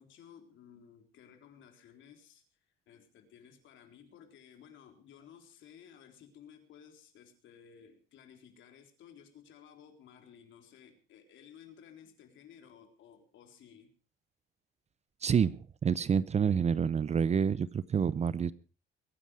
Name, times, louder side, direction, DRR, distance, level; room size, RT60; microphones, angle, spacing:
voice 1, 0.0-13.9, left 8 dB, 65° left, 5 dB, 3.8 m, -56 dB
voice 2, 15.2-18.5, right 7 dB, 30° right, 18 dB, 0.7 m, -28 dB
22.5 x 10.0 x 4.9 m, 0.37 s
cardioid pair, 105°, 21 cm